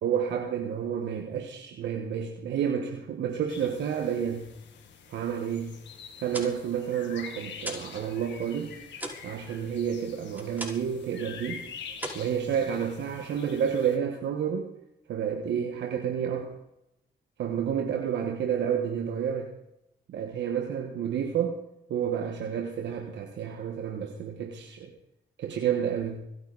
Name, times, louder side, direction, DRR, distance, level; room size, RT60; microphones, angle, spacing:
voice 1, 0.0-4.5 5.1-5.7 6.2-8.7 9.2-11.6 12.1-14.7 15.1-16.6 17.4-19.5 20.1-21.6 21.9-24.9 25.4-26.2, right 8 dB, 85° right, 2 dB, 1.6 m, -30 dB
sound 1, 3.5-14.0, left 6 dB, 85° left, 2.1 m, -46 dB
sound 2, 6.1-8.0 8.3-11.0 11.3-11.6 11.9-13.0, right 1 dB, 10° right, 5.2 m, -40 dB
25.0 x 9.5 x 4.2 m, 0.81 s
supercardioid pair, 50°, 18 cm